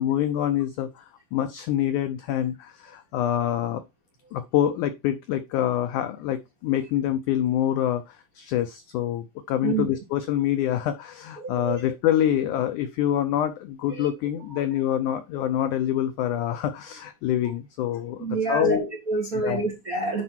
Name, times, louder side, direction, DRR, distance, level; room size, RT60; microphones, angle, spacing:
voice 1, 0.0-3.8 4.3-18.8 19.3-19.6, left 11 dB, 80° left, 10 dB, 1.8 m, -26 dB
voice 2, 11.4-11.8 13.9-14.1 14.5-14.6 18.2-20.2, right 3 dB, 40° right, 0 dB, 1.4 m, -27 dB
9.9 x 4.4 x 4.4 m, 0.24 s
omnidirectional pair, 4.3 m